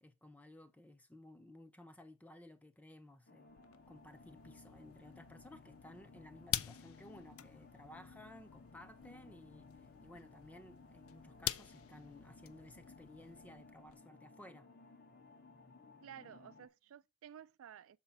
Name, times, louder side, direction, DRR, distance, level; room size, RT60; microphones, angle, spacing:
voice 1, 0.0-14.7, left 1 dB, 5° left, 0.6 m, -57 dB
sound 1, 3.3-16.7, left 3 dB, 50° left, 1.1 m, -60 dB
sound 2, 3.5-14.0, left 12 dB, 80° left, 0.5 m, -47 dB
voice 2, 16.0-18.0, right 9 dB, 70° right, 0.3 m, -54 dB
6.6 x 4.4 x 5.5 m
head